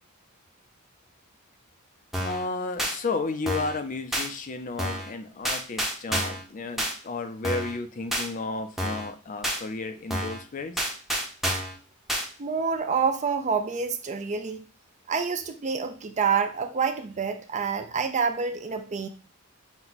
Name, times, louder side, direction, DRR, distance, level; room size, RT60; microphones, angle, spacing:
sound 1, 2.1-2.4 2.8-3.0 3.5-3.8 4.1-4.3 4.8-5.1 5.5-6.4 6.8-6.9 7.4-7.8 8.1-8.3 8.8-9.1 9.4-9.6 10.1-10.4 10.8-11.8 12.1-12.3, equal, ahead, 0.7 m, -29 dB
voice 1, 2.2-10.8, left 3 dB, 40° left, 8 dB, 0.5 m, -33 dB
voice 2, 12.4-14.6 15.1-19.1, right 5 dB, 35° right, 8 dB, 0.4 m, -27 dB
6.0 x 2.2 x 3.9 m, 0.37 s
head